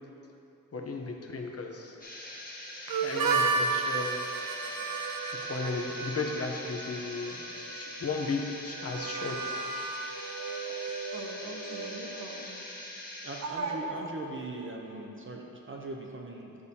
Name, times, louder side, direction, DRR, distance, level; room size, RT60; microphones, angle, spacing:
voice 1, 0.7-2.0 3.0-4.2 5.4-7.4 7.7-9.6, left 3 dB, 45° left, 2 dB, 0.7 m, -35 dB
sound 1, 1.7-8.0, equal, 10° right, 1.4 m, -55 dB
sound 2, 2.0-13.4, left 1 dB, 25° left, 1.2 m, -43 dB
Harmonica, 2.9-12.5, right 4 dB, 80° right, 0.6 m, -34 dB
voice 2, 11.1-12.6 13.4-14.1, right 3 dB, 50° right, -1 dB, 1.1 m, -38 dB
voice 3, 13.2-16.6, right 2 dB, 35° right, 0 dB, 0.5 m, -40 dB
11.0 x 6.7 x 2.7 m, 2.8 s
wide cardioid pair, 140°, 34 cm